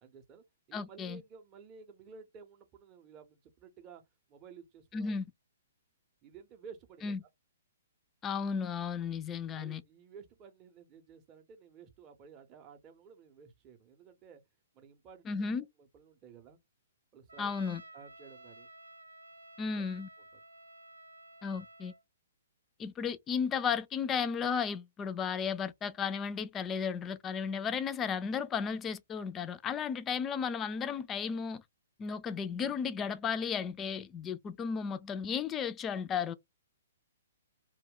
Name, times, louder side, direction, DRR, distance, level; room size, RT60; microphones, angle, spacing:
voice 1, 0.0-4.0 4.3-5.1 6.2-7.1 9.5-14.4 14.7-15.3 15.8-16.6 17.1-17.5 17.9-18.7 19.7-19.8, right 6 dB, 30° right, 0.6 m, -54 dB
voice 2, 0.7-1.2 4.9-5.3 7.0-7.2 8.2-9.8 15.3-15.6 17.4-17.8 19.6-20.1 21.4-21.9 22.8-31.6 32.0-36.3, left 6 dB, 20° left, 0.3 m, -34 dB
Trumpet, 17.3-22.0, right 2 dB, 85° right, 0.4 m, -53 dB
2.2 x 2.1 x 3.6 m
figure-of-eight pair, 125°, 0 cm